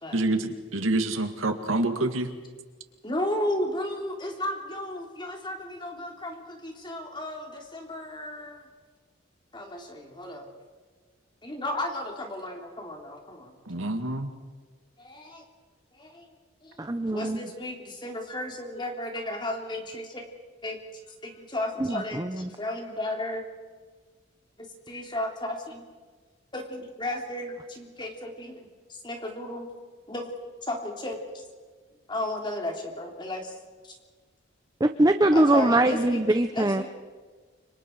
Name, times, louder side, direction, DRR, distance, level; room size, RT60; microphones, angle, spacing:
voice 1, 0.1-2.3 13.7-14.3, right 2 dB, 90° right, 7 dB, 2.2 m, -27 dB
voice 2, 3.0-8.7 9.5-10.5 11.4-13.6 15.0-15.5 15.9-16.3 16.6-16.9 17.1-20.3 20.6-20.8 21.1-23.4 24.6-25.8 26.5-29.7 30.1-30.3 30.6-31.4 32.1-33.6 33.8-33.9 35.3-36.2 36.5-36.8, left 1 dB, 25° left, 2 dB, 3.5 m, -34 dB
voice 3, 16.8-17.4 21.8-22.5 34.8-36.8, right 1 dB, 20° right, 8 dB, 0.7 m, -22 dB
29.5 x 26.0 x 4.7 m, 1.4 s
head